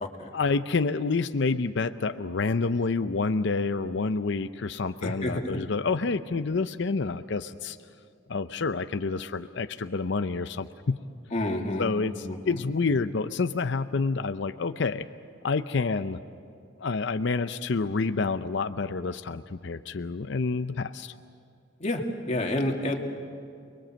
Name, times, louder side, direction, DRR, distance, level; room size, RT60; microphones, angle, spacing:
voice 1, 0.3-7.8 8.3-11.0 11.8-15.1 15.4-16.2 16.8-21.1, left 4 dB, 65° left, 11 dB, 0.6 m, -28 dB
voice 2, 5.0-5.6 11.3-11.9 12.2-12.6 21.8-23.0, left 1 dB, 35° left, 1 dB, 2.4 m, -29 dB
29.5 x 21.5 x 7.6 m, 2.4 s
head